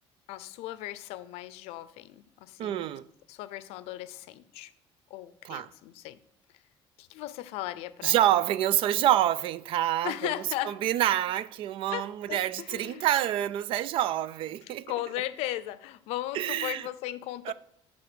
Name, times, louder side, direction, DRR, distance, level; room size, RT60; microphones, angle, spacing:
voice 1, 0.3-2.9 3.3-4.7 5.1-6.2 7.0-8.3 10.0-10.8 11.9-13.1 14.9-17.5, left 14 dB, 85° left, 0.5 m, -37 dB
voice 2, 2.6-3.1 5.4-5.7 8.0-10.3 10.7-14.9 16.3-16.8 17.5-17.6, right 12 dB, 60° right, 0.4 m, -27 dB
9.8 x 3.5 x 6.1 m
cardioid pair, 135°, 10 cm